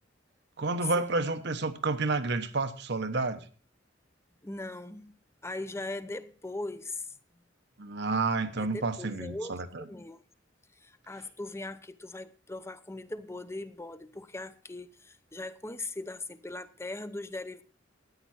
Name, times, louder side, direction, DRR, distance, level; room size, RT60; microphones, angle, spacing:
voice 1, 0.6-3.4 7.8-9.9, right 3 dB, 60° right, 1.2 m, -30 dB
voice 2, 4.4-5.1 5.4-7.1 8.6-10.2 10.8-17.6, left 2 dB, 15° left, 0.7 m, -40 dB
13.5 x 9.6 x 4.4 m
head